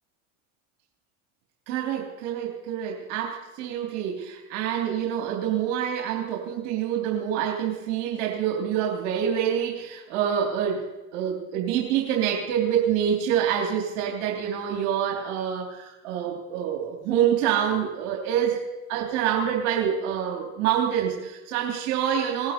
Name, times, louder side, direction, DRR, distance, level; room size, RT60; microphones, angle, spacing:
voice 1, 1.7-10.8 11.1-18.6 18.9-22.5, right 9 dB, 70° right, 0 dB, 3.3 m, -26 dB
20.0 x 11.5 x 4.5 m, 1.1 s
supercardioid pair, 95°, 37 cm